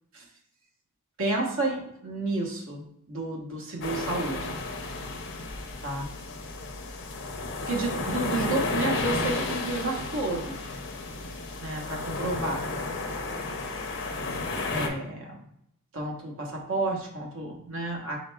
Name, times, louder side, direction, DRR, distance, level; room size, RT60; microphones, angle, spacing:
voice 1, 1.2-4.6 5.8-6.1 7.6-10.8 11.6-12.6 14.7-15.4 15.9-18.2, right 2 dB, 60° right, 0 dB, 1.1 m, -31 dB
sound 1, 3.8-14.9, left 3 dB, 55° left, 0.7 m, -32 dB
5.0 x 4.1 x 2.2 m, 0.75 s
head